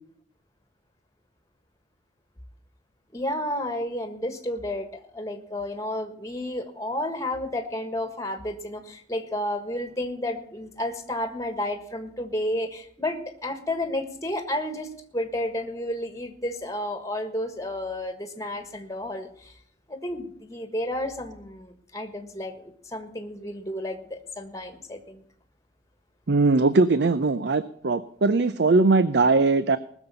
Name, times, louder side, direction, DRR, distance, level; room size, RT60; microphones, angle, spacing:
voice 1, 3.1-19.5 19.9-25.2, left 1 dB, 15° left, 7 dB, 1.6 m, -31 dB
voice 2, 26.3-29.8, right 3 dB, 65° right, 14 dB, 0.6 m, -20 dB
19.5 x 7.2 x 6.9 m, 0.63 s
head